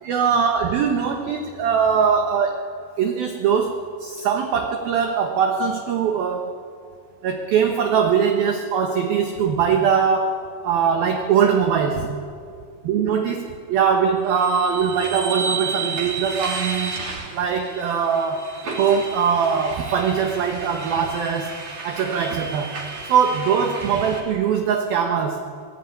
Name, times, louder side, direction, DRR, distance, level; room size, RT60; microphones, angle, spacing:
voice 1, 0.0-2.6 3.0-6.5 7.2-12.1 12.8-17.0 17.3-18.5 18.8-21.6 21.8-22.8 23.0-25.4, right 6 dB, 65° right, 4 dB, 2.5 m, -21 dB
sound 1, 14.2-24.2, right 4 dB, 40° right, 4.4 m, -32 dB
25.0 x 19.0 x 9.4 m, 2.3 s
omnidirectional pair, 5.8 m